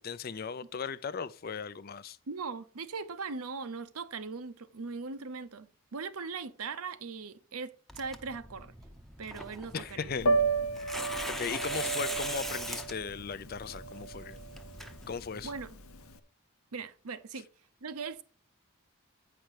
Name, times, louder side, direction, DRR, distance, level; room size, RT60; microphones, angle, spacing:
voice 1, 0.0-2.2 9.7-10.3 11.3-14.4 15.1-15.5, left 6 dB, 45° left, 0.4 m, -37 dB
voice 2, 2.3-8.7 9.2-10.2 15.4-15.8 16.7-17.5 17.8-18.2, right 4 dB, 90° right, 0.8 m, -40 dB
Tearing, 7.9-15.6, equal, ahead, 0.7 m, -42 dB
Piano, 10.2-16.1, right 3 dB, 80° left, 0.8 m, -33 dB
9.1 x 5.8 x 4.9 m
head